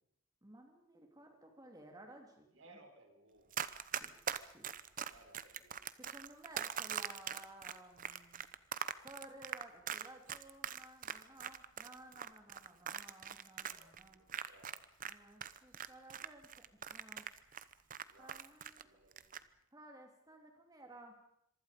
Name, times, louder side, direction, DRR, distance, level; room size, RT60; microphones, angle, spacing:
voice 1, 0.4-2.8 3.9-4.1 4.5-4.7 6.0-8.5 9.0-14.2 15.1-17.3 18.2-18.9 19.7-21.1, right 1 dB, 20° right, 2 dB, 3.2 m, -56 dB
voice 2, 2.5-3.5 5.0-5.8 13.6-15.0 18.1-18.3 18.8-19.4, right 2 dB, 70° right, 5 dB, 5.0 m, -63 dB
Run, 3.5-15.1 15.4-18.8 19.1-19.4, right 8 dB, 40° right, 0.9 m, -42 dB
26.0 x 24.0 x 5.3 m, 0.75 s
head